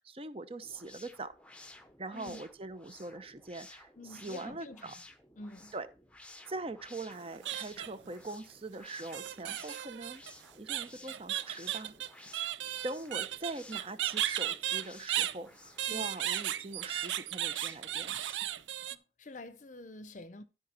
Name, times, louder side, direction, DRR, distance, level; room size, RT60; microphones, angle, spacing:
voice 1, 0.0-1.3 2.0-4.9 5.7-5.9 6.5-10.2 10.6-11.9 12.8-18.3, right 2 dB, 30° right, 0.7 m, -42 dB
sound 1, 0.6-18.7, left 2 dB, 5° left, 0.8 m, -55 dB
voice 2, 2.1-2.4 4.0-4.9 5.4-5.7 15.9-16.1 18.9-20.4, left 2 dB, 45° left, 0.7 m, -48 dB
sound 2, 7.1-8.1 9.1-15.4 15.8-19.0, right 12 dB, 90° right, 0.5 m, -35 dB
12.5 x 5.0 x 4.3 m
head